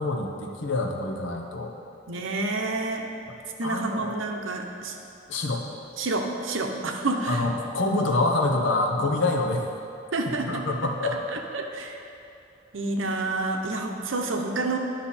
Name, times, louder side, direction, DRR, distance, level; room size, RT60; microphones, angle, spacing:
voice 1, 0.0-1.7 3.6-4.3 5.3-5.6 7.3-9.6 10.3-11.4, left 2 dB, 70° left, 2 dB, 0.9 m, -26 dB
voice 2, 2.1-3.1 3.6-4.9 6.0-7.5 10.1-10.6 11.5-11.9 12.7-14.8, right 2 dB, 80° right, 3 dB, 0.8 m, -28 dB
10.5 x 5.7 x 4.3 m, 2.6 s
head